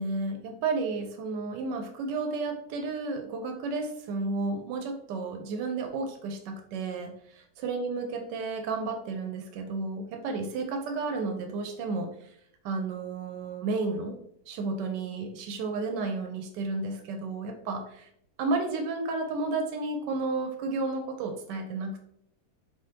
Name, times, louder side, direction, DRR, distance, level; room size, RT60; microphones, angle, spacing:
voice 1, 0.0-12.3 12.6-14.2 14.5-18.1 18.4-22.0, right 3 dB, 85° right, 5 dB, 1.3 m, -32 dB
4.3 x 3.5 x 2.8 m, 0.72 s
omnidirectional pair, 1.8 m